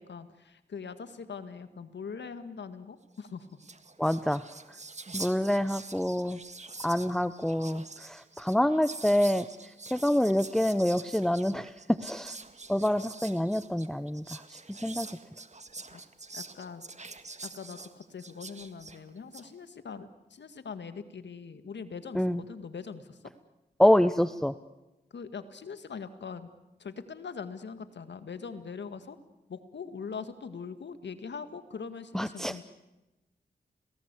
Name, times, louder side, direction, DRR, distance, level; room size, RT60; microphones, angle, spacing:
voice 1, 0.0-3.6 15.9-16.0 16.3-16.8 17.4-23.2 25.1-26.5 26.8-29.2 29.5-32.6, left 5 dB, 75° left, 11 dB, 1.9 m, -42 dB
Whispering, 3.3-3.4 3.5-19.5, right 3 dB, 40° right, 1.8 m, -45 dB
voice 2, 4.0-4.4 5.1-6.4 6.8-9.4 9.9-12.3 12.7-14.4 14.8-15.1 22.1-22.4 23.8-24.5 32.1-32.5, left 1 dB, ahead, 13 dB, 0.9 m, -26 dB
30.0 x 19.5 x 8.3 m, 1.0 s
cardioid pair, 50°, 18 cm